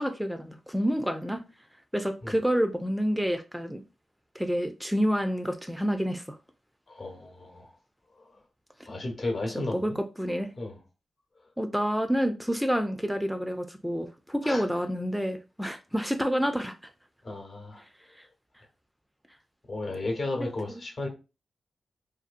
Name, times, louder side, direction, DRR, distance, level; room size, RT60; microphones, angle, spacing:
voice 1, 0.0-1.4 1.9-3.8 4.4-6.4 9.7-10.5 11.6-16.7 18.2-18.3 20.7-20.8, equal, 5° right, 0.3 m, -28 dB
voice 2, 6.9-7.7 8.2-8.4 8.9-10.0 10.6-10.8 14.4-14.6 17.2-17.8 19.7-21.1, left 2 dB, 55° left, 0.9 m, -34 dB
2.6 x 2.3 x 2.4 m
cardioid pair, 55°, 0 cm